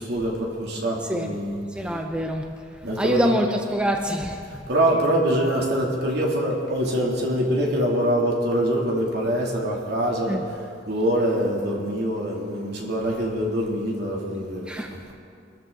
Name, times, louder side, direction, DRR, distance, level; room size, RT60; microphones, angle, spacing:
voice 1, 0.0-1.6 2.8-3.3 4.7-10.4 10.9-14.7, right 1 dB, 65° right, -3 dB, 3.1 m, -24 dB
voice 2, 1.7-2.5 3.0-4.7 10.3-10.4 14.7-14.9, equal, 5° right, 3 dB, 0.7 m, -25 dB
24.0 x 13.5 x 4.0 m, 2.4 s
head